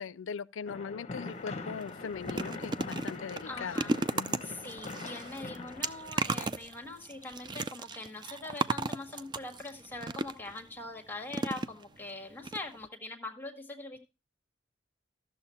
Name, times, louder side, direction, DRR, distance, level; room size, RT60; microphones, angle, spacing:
voice 1, 0.0-4.4, left 6 dB, 75° left, 0.4 m, -40 dB
sound 1, 0.7-6.4, left 3 dB, 35° left, 0.9 m, -42 dB
sound 2, 1.3-1.4 1.8-10.6 11.3-12.1 12.4-12.6 12.8-12.9, right 3 dB, 25° right, 0.4 m, -35 dB
voice 2, 3.4-4.0 4.4-14.0, left 2 dB, 10° left, 1.3 m, -42 dB
13.5 x 7.0 x 4.2 m
head